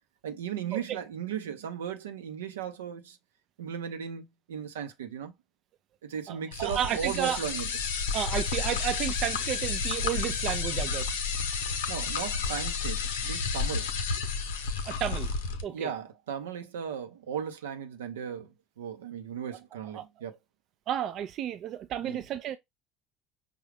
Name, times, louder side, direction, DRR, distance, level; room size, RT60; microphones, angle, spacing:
voice 1, 0.2-3.2 3.6-5.3 6.0-7.7 11.9-13.9 15.6-20.4 22.0-22.2, right 8 dB, 85° right, 0.7 m, -36 dB
voice 2, 6.3-7.4 8.1-11.2 14.8-15.3 15.6-15.9 19.9-20.1 20.9-22.6, right 10 dB, 55° right, 0.4 m, -32 dB
sound 1, 6.5-15.6, left 5 dB, 80° left, 0.8 m, -31 dB
5.2 x 2.4 x 3.3 m
hypercardioid pair, 75°, 0 cm